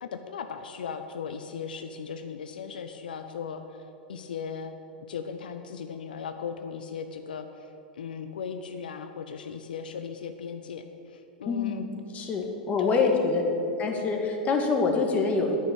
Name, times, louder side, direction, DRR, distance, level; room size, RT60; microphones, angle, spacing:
voice 1, 0.0-4.7 5.1-11.8 12.8-13.2, left 6 dB, 80° left, 7 dB, 0.5 m, -37 dB
voice 2, 11.5-13.4 13.8-15.6, left 4 dB, 30° left, 2 dB, 1.8 m, -26 dB
9.4 x 6.4 x 8.1 m, 3.0 s
hypercardioid pair, 105°, 5 cm